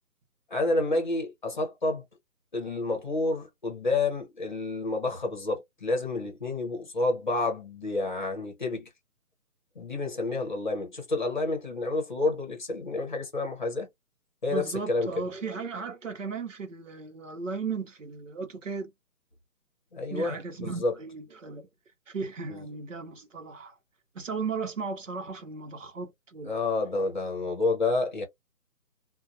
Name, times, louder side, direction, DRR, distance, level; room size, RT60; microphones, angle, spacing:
voice 1, 0.5-2.0 2.5-8.9 9.7-13.9 14.4-15.1 19.9-20.3 20.6-20.9 22.5-22.6 26.5-28.2, left 2 dB, 30° left, 0.9 m, -29 dB
voice 2, 14.5-18.9 20.1-21.7 22.1-23.7 24.1-26.5, right 5 dB, 50° right, 0.9 m, -36 dB
2.5 x 2.2 x 2.6 m
hypercardioid pair, 175°, 47 cm